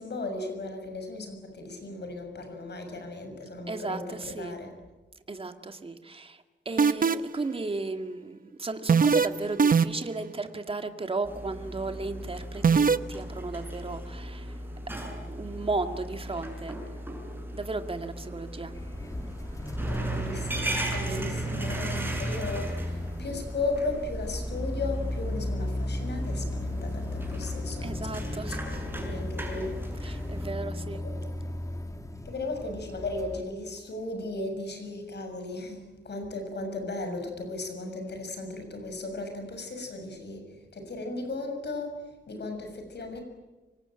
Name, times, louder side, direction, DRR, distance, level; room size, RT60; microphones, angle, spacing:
voice 1, 0.0-4.7 19.8-29.8 31.0-31.1 32.2-43.2, left 2 dB, 65° left, 5 dB, 6.6 m, -36 dB
voice 2, 3.7-4.6 5.3-14.5 15.0-16.8 17.5-18.7 21.2-21.3 27.8-28.8 30.0-31.0, right 3 dB, 30° right, 7 dB, 2.1 m, -35 dB
sound 1, 6.8-7.4 8.9-9.3 9.6-10.1 12.6-13.0, right 6 dB, 50° right, 0.9 m, -20 dB
sound 2, 11.2-30.5, right 1 dB, 10° right, 7.2 m, -37 dB
sound 3, 18.7-33.4, left 1 dB, 15° left, 2.0 m, -35 dB
25.5 x 25.0 x 9.0 m, 1.2 s
wide cardioid pair, 130°, 19 cm